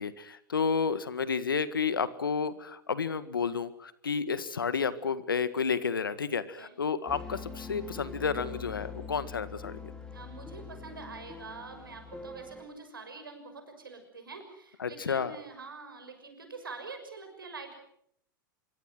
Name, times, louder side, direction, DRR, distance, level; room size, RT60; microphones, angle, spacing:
voice 1, 0.0-9.9 14.8-15.4, left 5 dB, 85° left, 14 dB, 1.8 m, -31 dB
sound 1, 7.1-12.7, left 4 dB, 5° left, 4.1 m, -43 dB
voice 2, 10.1-17.7, right 4 dB, 90° right, 6 dB, 6.1 m, -45 dB
26.0 x 24.0 x 6.2 m, 0.70 s
hypercardioid pair, 95°, 11 cm